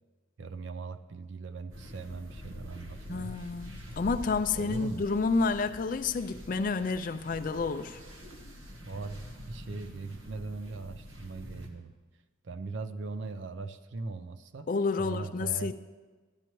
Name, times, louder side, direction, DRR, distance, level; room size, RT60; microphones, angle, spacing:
voice 1, 0.4-3.4 4.5-5.0 8.8-11.9 12.4-14.7 15.0-15.7, right 3 dB, 65° right, 10 dB, 0.5 m, -40 dB
sound 1, 1.7-11.7, left 1 dB, 80° right, 1.4 m, -46 dB
voice 2, 3.1-8.0 14.7-15.7, left 4 dB, 40° left, 9 dB, 0.4 m, -30 dB
14.0 x 11.5 x 3.1 m, 1.3 s
head